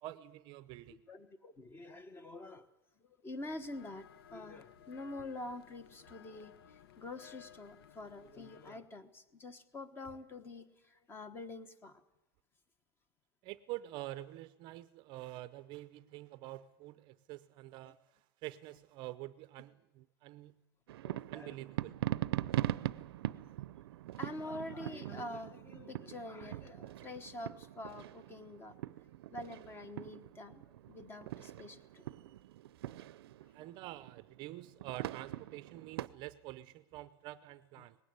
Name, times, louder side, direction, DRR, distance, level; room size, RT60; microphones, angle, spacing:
voice 1, 0.0-1.0 13.4-18.0 18.4-20.5 21.3-22.0 33.5-38.0, right 16 dB, 35° right, 0.7 m, -47 dB
voice 2, 0.9-2.7 3.0-12.0 17.8-17.9 21.0-21.7 24.2-28.8 29.3-32.1 37.8-37.9, left 2 dB, 15° left, 1.3 m, -46 dB
sound 1, 3.4-8.7, left 10 dB, 75° left, 1.2 m, -59 dB
sound 2, 20.9-36.1, right 14 dB, 80° right, 0.7 m, -41 dB
19.5 x 16.5 x 9.6 m
supercardioid pair, 150°, 13 cm